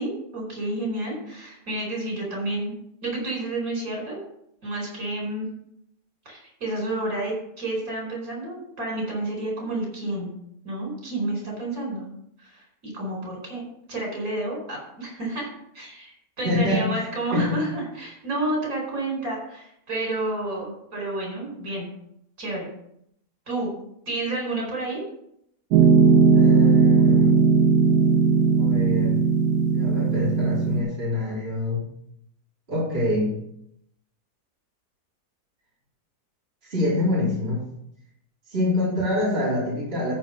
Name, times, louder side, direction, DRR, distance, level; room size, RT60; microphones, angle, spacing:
voice 1, 0.0-2.8 3.0-4.2 4.6-5.5 6.2-10.3 10.6-12.0 12.5-15.5 15.7-21.9 22.4-22.7 23.5-23.7 24.1-25.0, right 2 dB, 60° right, -2 dB, 5.1 m, -30 dB
voice 2, 16.4-17.1 17.3-17.6 26.3-27.4 28.6-29.2 29.7-31.8 32.7-33.3 36.6-37.6 38.5-40.1, left 2 dB, 35° right, -8 dB, 3.6 m, -25 dB
Piano, 25.7-30.8, right 4 dB, 80° right, 1.4 m, -18 dB
13.5 x 4.8 x 5.4 m, 0.73 s
omnidirectional pair, 1.7 m